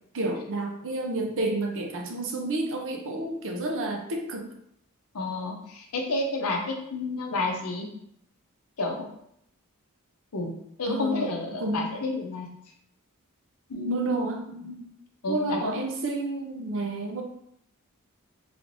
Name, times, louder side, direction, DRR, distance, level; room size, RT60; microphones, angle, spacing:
voice 1, 0.1-4.5 10.9-11.9 13.9-14.4 15.3-17.2, right 2 dB, 60° right, 3 dB, 0.6 m, -30 dB
voice 2, 5.1-7.9 8.8-9.1 10.3-10.5 10.8-12.5 13.7-14.2 14.5-14.8 15.2-15.7, left 2 dB, 75° left, 1 dB, 0.7 m, -30 dB
3.2 x 3.2 x 2.6 m, 0.73 s
head